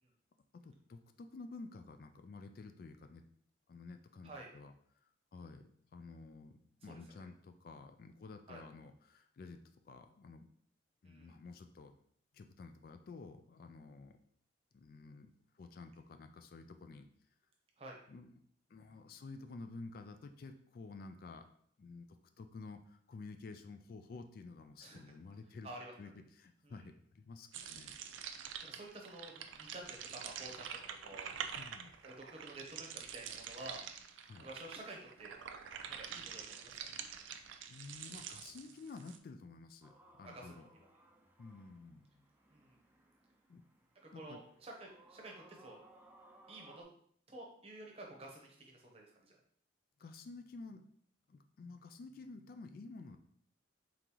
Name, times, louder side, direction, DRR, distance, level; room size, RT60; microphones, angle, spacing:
voice 1, 0.5-3.2 3.7-9.6 9.9-10.5 11.0-11.9 12.3-14.2 14.7-17.1 18.1-18.4 18.7-21.5 21.8-25.7 26.0-28.0 31.5-31.9 34.3-34.5 37.7-40.7 41.4-42.3 43.5-43.6 44.1-44.4 50.0-50.8 51.3-53.2, left 3 dB, 50° left, 7 dB, 0.3 m, -51 dB
voice 2, 6.9-7.3 8.5-8.6 11.0-11.4 17.8-18.0 24.8-25.1 25.6-25.9 26.6-26.9 28.6-31.3 32.0-33.8 34.4-35.4 35.9-36.9 40.2-40.9 42.5-42.8 44.0-45.8 46.5-46.8 47.3-49.4, right 2 dB, 30° right, -1 dB, 0.8 m, -51 dB
sound 1, 27.5-39.2, right 8 dB, 85° right, 0.4 m, -47 dB
sound 2, 39.8-46.8, right 1 dB, 10° right, 0.5 m, -64 dB
3.8 x 3.6 x 2.9 m, 0.63 s
head